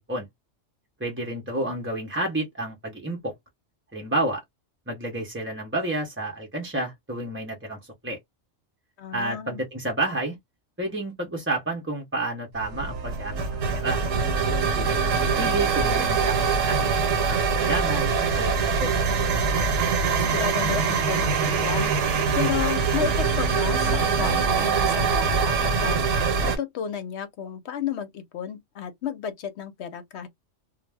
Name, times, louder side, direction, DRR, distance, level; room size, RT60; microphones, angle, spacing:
voice 1, 1.0-3.3 3.9-4.4 4.9-8.2 9.1-10.4 10.8-14.0 14.8-16.9 17.3-18.5 18.8-18.9, right 2 dB, 15° right, 0.4 m, -30 dB
voice 2, 9.0-9.6 20.1-30.3, left 8 dB, 65° left, 0.9 m, -33 dB
sound 1, 12.6-26.6, right 5 dB, 75° right, 1.0 m, -23 dB
2.3 x 2.0 x 3.3 m
omnidirectional pair, 1.3 m